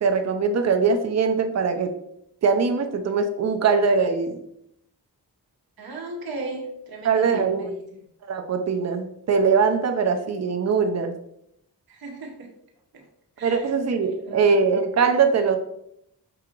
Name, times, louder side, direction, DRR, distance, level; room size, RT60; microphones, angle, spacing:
voice 1, 0.0-1.9 2.4-4.4 7.0-7.6 8.3-11.1 13.4-15.6, right 5 dB, 40° right, 5 dB, 0.5 m, -21 dB
voice 2, 5.8-7.8 11.9-12.5 12.9-13.0 13.4-13.7 14.0-14.4, right 2 dB, 60° right, 1 dB, 0.9 m, -36 dB
4.8 x 2.8 x 2.4 m, 0.75 s
cardioid pair, 55°, 40 cm